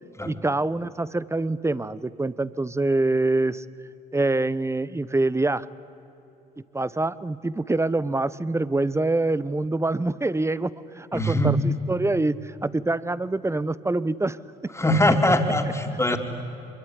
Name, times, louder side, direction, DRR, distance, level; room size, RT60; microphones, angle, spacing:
voice 1, 0.3-3.6 4.1-5.7 6.7-14.4, right 2 dB, 15° right, 18 dB, 1.0 m, -25 dB
voice 2, 11.1-11.5 14.8-16.2, left 1 dB, 15° left, 4 dB, 3.5 m, -21 dB
24.5 x 22.5 x 10.0 m, 2.9 s
hypercardioid pair, 65°, 20 cm